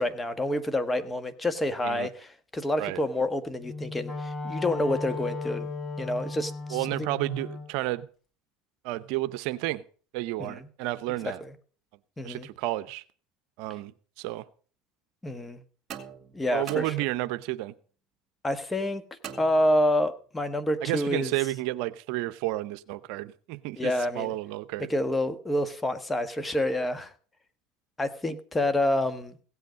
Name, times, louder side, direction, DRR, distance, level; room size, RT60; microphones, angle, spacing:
voice 1, 0.0-5.7 6.0-7.1 10.4-10.6 11.2-11.3 12.2-12.5 15.2-15.6 16.3-16.9 18.4-19.0 19.4-21.3 23.8-24.3 24.9-27.1 28.0-29.4, left 1 dB, 15° left, 11 dB, 1.4 m, -28 dB
Wind instrument woodwind instrument, 3.6-7.7, left 3 dB, 40° left, 6.8 m, -36 dB
voice 2, 6.7-8.1 8.8-9.8 10.1-11.4 12.2-13.0 13.6-14.5 16.5-17.7 20.8-24.9, right 17 dB, 70° right, 14 dB, 0.7 m, -31 dB
sound 1, 15.9-17.5 19.2-20.2, right 8 dB, 45° right, 2.3 m, -44 dB
16.5 x 8.2 x 5.2 m, 0.42 s
supercardioid pair, 100°, 0 cm